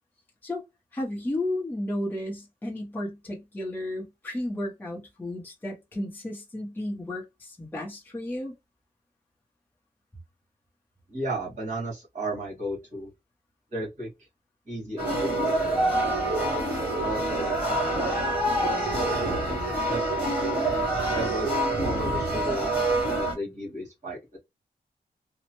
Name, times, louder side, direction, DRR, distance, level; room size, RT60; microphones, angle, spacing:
voice 1, 0.9-8.5, left 1 dB, 10° left, 0.7 m, -33 dB
voice 2, 11.1-13.1 13.7-14.1 14.7-16.2 17.0-18.7 19.5-20.5 21.1-21.5 21.8-24.4, right 1 dB, 50° right, 1.7 m, -35 dB
sound 1, 15.0-23.3, right 1 dB, 10° right, 1.7 m, -26 dB
3.0 x 2.1 x 3.0 m
wide cardioid pair, 170°, 16 cm